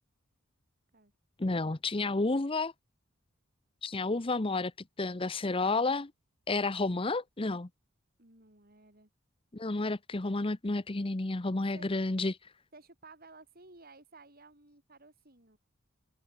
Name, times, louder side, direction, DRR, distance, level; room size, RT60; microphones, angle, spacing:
voice 1, 1.4-2.7 3.8-4.7 5.0-6.1 6.5-7.7 9.5-12.3, left 3 dB, 25° left, 0.8 m, -31 dB
voice 2, 8.2-9.1 11.7-11.9 12.7-15.6, right 3 dB, 45° right, 6.8 m, -55 dB
head